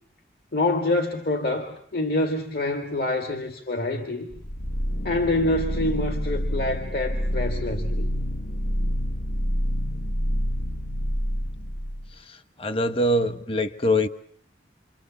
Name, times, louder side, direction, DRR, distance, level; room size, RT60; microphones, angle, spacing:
voice 1, 0.5-4.3 5.0-8.1, left 2 dB, 60° left, 5 dB, 2.3 m, -26 dB
sound 1, 4.3-12.2, equal, 75° left, 1.2 m, -28 dB
voice 2, 12.3-14.1, left 1 dB, 30° left, 10 dB, 1.3 m, -24 dB
28.5 x 26.0 x 7.2 m, 0.63 s
head